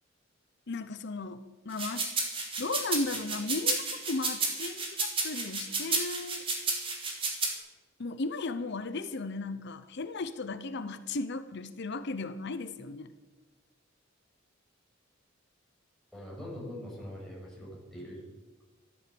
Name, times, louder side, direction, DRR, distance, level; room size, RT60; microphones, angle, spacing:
voice 1, 0.7-2.1 2.6-6.8 8.0-13.1, left 3 dB, 60° left, 11 dB, 0.8 m, -36 dB
sound 1, 1.7-7.5, right 3 dB, 25° right, 2.9 m, -31 dB
voice 2, 16.1-18.2, left 1 dB, ahead, -5 dB, 6.2 m, -42 dB
13.5 x 12.5 x 7.0 m, 1.2 s
head